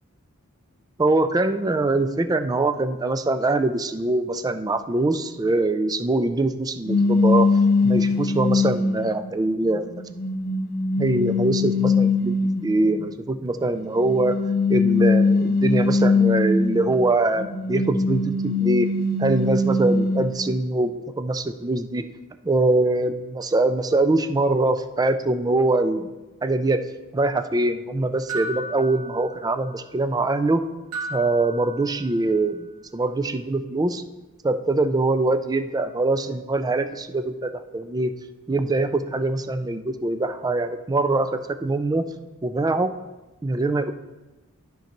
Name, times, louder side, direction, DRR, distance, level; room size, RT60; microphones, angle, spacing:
voice 1, 1.0-7.5 7.8-9.9 11.0-12.4 12.6-14.4 14.7-18.9 19.2-22.0 22.4-26.1 26.4-26.8 27.1-30.6 31.1-32.7 32.9-34.0 34.4-38.1 38.5-42.1 42.4-42.9 43.4-43.9, right 2 dB, 15° right, 9 dB, 0.3 m, -23 dB
sound 1, 6.9-9.1 9.7-12.8 13.9-16.9 17.4-20.3, left 3 dB, 45° left, 1.0 m, -21 dB
sound 2, 28.3-29.8 30.9-32.4, right 2 dB, 85° right, 2.3 m, -35 dB
12.5 x 5.2 x 3.0 m, 1.1 s
head